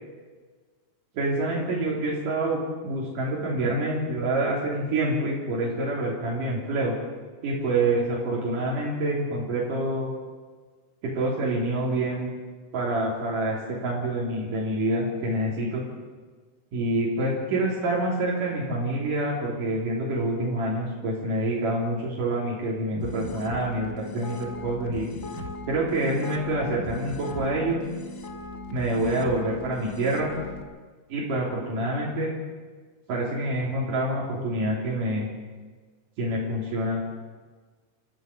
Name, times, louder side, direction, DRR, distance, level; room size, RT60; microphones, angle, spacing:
voice 1, 1.1-6.9 7.4-10.1 11.0-12.3 12.7-15.8 16.7-25.1 25.7-27.8 28.7-30.3 31.1-32.3 33.1-35.3 36.2-37.0, right 1 dB, 85° right, -5 dB, 4.9 m, -27 dB
sound 1, 22.9-30.6, left 2 dB, 35° left, 1.4 m, -38 dB
28.5 x 14.5 x 6.8 m, 1.4 s
omnidirectional pair, 3.7 m